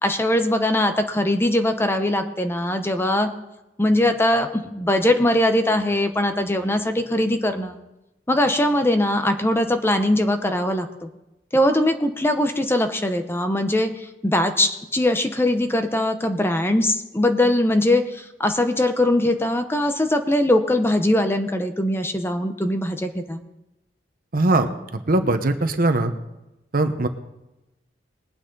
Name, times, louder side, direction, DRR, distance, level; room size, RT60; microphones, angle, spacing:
voice 1, 0.0-3.3 3.8-7.8 8.3-11.1 11.5-23.4, left 1 dB, 15° left, 7 dB, 0.8 m, -21 dB
voice 2, 24.3-26.1 26.7-27.1, right 2 dB, 55° right, 8 dB, 1.0 m, -21 dB
21.0 x 9.0 x 3.9 m, 0.96 s
head